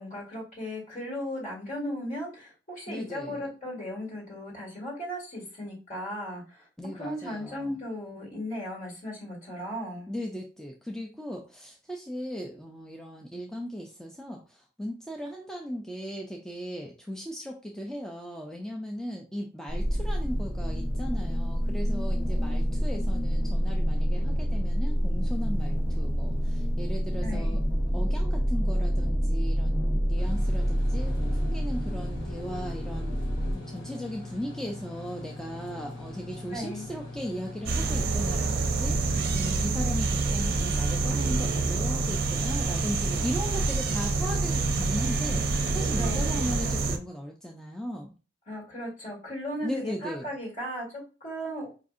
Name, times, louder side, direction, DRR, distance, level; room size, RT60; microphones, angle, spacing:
voice 1, 0.0-6.6 6.9-10.1 27.2-27.6 36.5-36.9 46.0-46.3 48.5-51.7, equal, 45° left, -4 dB, 2.0 m, -36 dB
voice 2, 2.9-3.5 6.8-7.8 10.1-27.6 27.9-33.2 33.5-48.2 49.6-50.3, equal, 5° left, 0 dB, 0.3 m, -37 dB
sound 1, 19.7-33.5, equal, 20° left, 0.8 m, -27 dB
sound 2, 30.2-46.7, left 2 dB, 65° left, 1.5 m, -42 dB
sound 3, 37.7-47.0, right 3 dB, 55° right, 0.5 m, -27 dB
4.8 x 2.6 x 2.4 m, 0.34 s
head